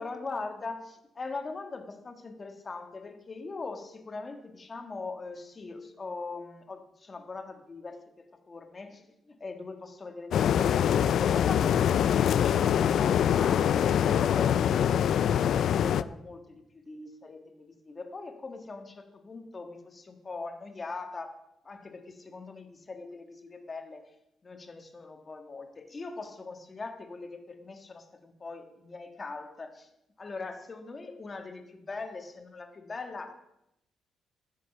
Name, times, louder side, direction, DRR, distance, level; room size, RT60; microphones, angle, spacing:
voice 1, 0.0-13.7 14.0-15.3 15.7-21.4 21.6-24.1 24.4-29.9 30.2-33.3, left 3 dB, 30° left, 5 dB, 1.6 m, -41 dB
sound 1, 10.3-16.0, left 9 dB, 65° left, 0.4 m, -24 dB
15.0 x 6.5 x 5.4 m, 0.82 s
cardioid pair, 115°, 0 cm